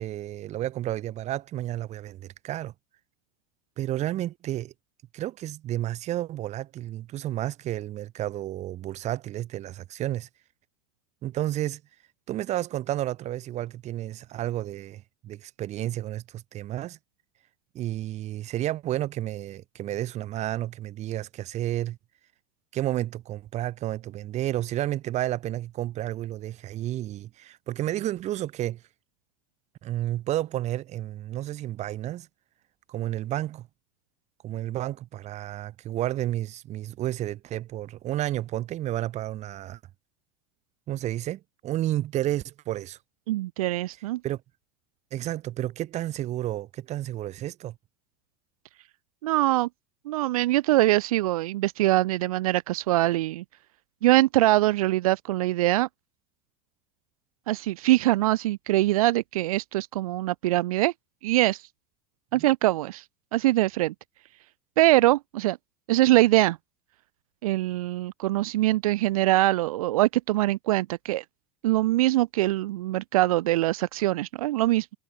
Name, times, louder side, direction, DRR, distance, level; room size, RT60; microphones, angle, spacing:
voice 1, 0.0-2.7 3.8-4.7 5.1-10.3 11.2-11.8 12.3-17.0 17.7-22.0 22.7-28.8 29.8-32.3 32.9-33.7 34.4-39.8 40.9-43.0 44.2-44.4 45.1-47.8 62.3-62.5, right 13 dB, 40° right, 1.1 m, -31 dB
voice 2, 43.3-44.2 49.2-49.7 50.1-53.4 54.0-55.9 57.5-60.9 61.2-61.6 62.3-63.0 63.3-63.9 64.8-65.6 65.9-66.6 67.4-71.2 71.6-74.9, right 16 dB, 90° right, 0.8 m, -23 dB
supercardioid pair, 120°, 18 cm